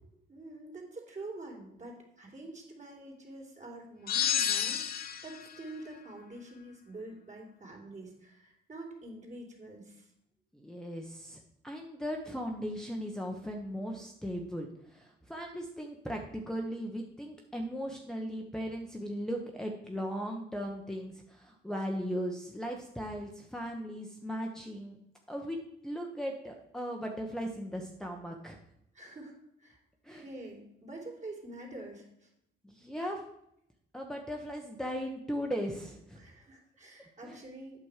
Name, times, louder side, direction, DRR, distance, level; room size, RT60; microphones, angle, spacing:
voice 1, 0.3-10.1 28.9-29.3 29.6-29.8 30.1-32.3 36.2-37.8, right 2 dB, 35° right, 0 dB, 3.1 m, -46 dB
sound 1, 4.1-5.4, left 9 dB, 50° left, 0.9 m, -30 dB
voice 2, 10.5-11.4 11.6-25.0 25.3-25.6 25.8-28.6 30.0-30.2 32.6-33.2 33.9-36.2 37.2-37.4, equal, 5° left, 0 dB, 1.0 m, -37 dB
8.9 x 6.2 x 4.9 m, 0.77 s
cardioid pair, 90°, 20 cm